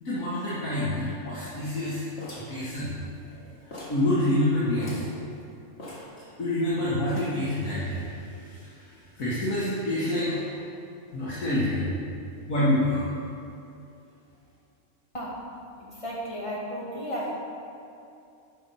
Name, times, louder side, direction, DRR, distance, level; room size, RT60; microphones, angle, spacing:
voice 1, 0.0-2.0 2.3-2.9 3.2-5.1 6.4-8.9 9.2-10.6 11.1-11.9 12.5-13.1, left 1 dB, 70° left, -9 dB, 2.1 m, -27 dB
sound 1, 2.2-3.4 3.7-4.1 4.4-4.5 4.7-5.2 5.8-6.6 7.0-7.5, left 1 dB, 50° left, 2.2 m, -42 dB
voice 2, 15.9-17.3, equal, 20° left, -6 dB, 2.0 m, -33 dB
10.0 x 5.9 x 5.6 m, 2.7 s
omnidirectional pair, 1.5 m